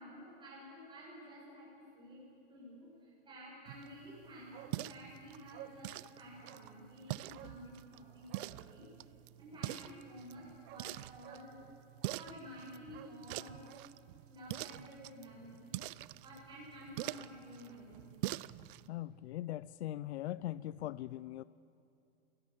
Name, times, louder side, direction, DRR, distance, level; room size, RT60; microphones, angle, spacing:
voice 1, 0.0-8.9 9.4-11.7 12.1-13.7 14.2-15.7 16.2-18.1, equal, 15° right, -6 dB, 7.8 m, -52 dB
sound 1, 3.7-18.9, right 17 dB, 55° right, 0.5 m, -45 dB
Bark, 4.5-4.8 5.1-5.2 5.5-5.8 6.4-6.7 7.3-7.6 8.2-8.5 10.1-10.2 10.6-10.9 11.2-11.5 12.0-12.3 12.8-13.9 14.2-14.3, right 13 dB, 30° right, 0.9 m, -53 dB
voice 2, 18.9-21.4, left 14 dB, 80° left, 18 dB, 0.6 m, -40 dB
29.5 x 17.5 x 7.3 m, 2.6 s
supercardioid pair, 150°, 33 cm